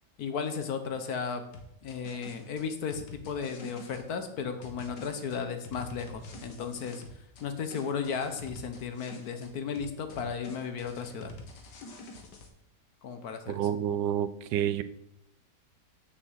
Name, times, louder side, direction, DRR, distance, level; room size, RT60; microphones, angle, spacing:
voice 1, 0.2-1.4 1.8-7.0 7.4-11.3 13.0-13.7, left 6 dB, 65° left, 8 dB, 1.5 m, -35 dB
sound 1, 1.5-4.0 4.6-7.5 7.7-9.5 9.8-12.5, left 2 dB, 80° left, 1.9 m, -47 dB
voice 2, 13.5-14.8, right 10 dB, 85° right, 13 dB, 1.2 m, -29 dB
6.5 x 6.0 x 7.4 m, 0.77 s
omnidirectional pair, 1.8 m